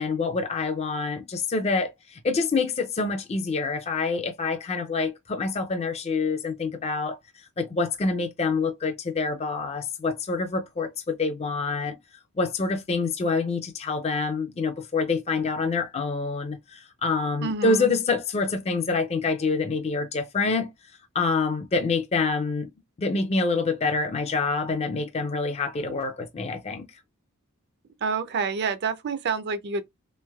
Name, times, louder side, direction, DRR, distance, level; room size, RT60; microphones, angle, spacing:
voice 1, 0.0-7.2 7.6-12.0 12.4-20.7 21.1-22.7 23.0-26.9, left 4 dB, 30° left, 0.4 m, -26 dB
voice 2, 17.4-17.9 28.0-29.8, right 5 dB, 50° right, 0.5 m, -28 dB
3.3 x 3.1 x 2.2 m
head